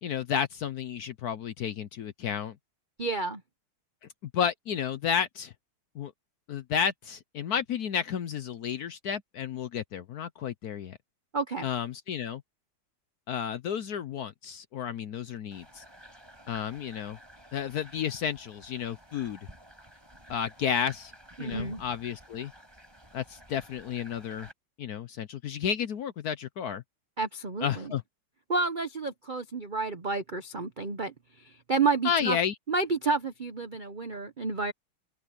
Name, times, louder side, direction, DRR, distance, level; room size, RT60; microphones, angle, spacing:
voice 1, 0.0-2.6 4.3-5.5 5.9-6.1 6.5-11.0 11.6-12.4 13.3-15.8 16.5-17.2 17.5-19.4 20.3-21.1 21.4-22.5 23.1-24.5 24.8-26.8 27.6-28.0 32.0-32.5, left 8 dB, 65° left, 1.0 m, -32 dB
voice 2, 3.0-3.4 11.3-11.7 21.4-21.8 27.2-27.9 28.5-31.1 31.4-32.4 32.7-34.7, right 4 dB, 65° right, 0.4 m, -30 dB
sound 1, 15.5-24.5, equal, 10° right, 6.0 m, -52 dB
omnidirectional pair, 2.3 m